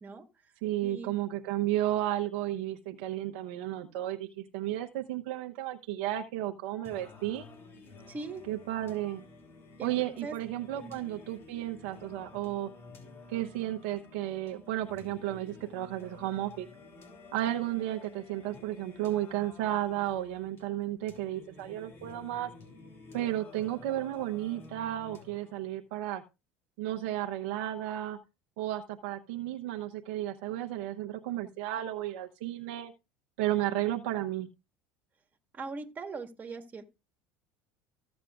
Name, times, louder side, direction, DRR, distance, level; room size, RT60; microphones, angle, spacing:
voice 1, 0.0-0.5 0.8-1.2 8.1-8.5 9.8-10.4 10.8-10.9 35.5-36.8, right 4 dB, 30° right, 4 dB, 1.8 m, -41 dB
voice 2, 0.6-7.5 8.5-9.2 9.8-12.7 13.3-16.7 17.3-22.5 23.1-26.2 26.8-28.2 28.6-32.9 33.4-34.5, right 13 dB, 75° right, 4 dB, 0.9 m, -33 dB
Singing, 6.8-25.8, left 3 dB, 40° left, 3.2 m, -52 dB
15.0 x 7.4 x 2.4 m, 0.27 s
hypercardioid pair, 90°, 6 cm